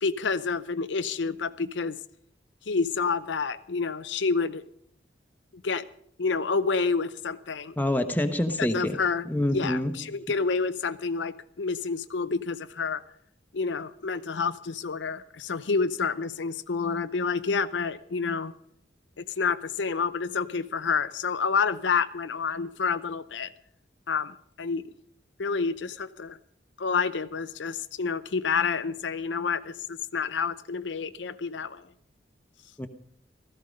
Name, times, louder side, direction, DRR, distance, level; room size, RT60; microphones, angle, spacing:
voice 1, 0.0-2.0 2.7-4.6 5.6-5.8 6.2-7.8 8.6-9.2 9.5-13.0 13.5-18.5 19.2-23.5 24.1-24.8 25.4-26.4 26.8-31.8, left 5 dB, 90° left, 0.7 m, -28 dB
voice 2, 7.8-9.0 9.2-9.9 32.8-32.9, left 1 dB, 10° left, 1.1 m, -26 dB
16.5 x 14.0 x 5.3 m
head